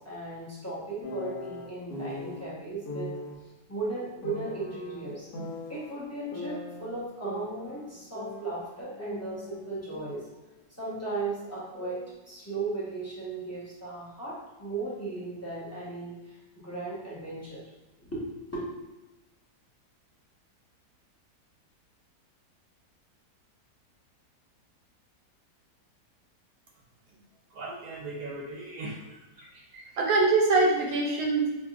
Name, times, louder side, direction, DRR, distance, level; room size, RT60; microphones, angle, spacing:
voice 1, 0.0-3.1 3.7-5.3 5.7-10.2 10.8-12.0 12.3-17.6 18.0-18.6, right 3 dB, 20° left, -8 dB, 0.5 m, -36 dB
sound 1, 1.0-2.4 2.9-3.4 4.2-5.9 6.3-7.9 8.1-10.3 10.6-12.1, left 2 dB, 75° left, 1.3 m, -40 dB
voice 2, 27.5-29.0 29.4-31.6, right 3 dB, 70° right, -1 dB, 0.9 m, -26 dB
5.0 x 2.5 x 2.4 m, 1.0 s
omnidirectional pair, 1.8 m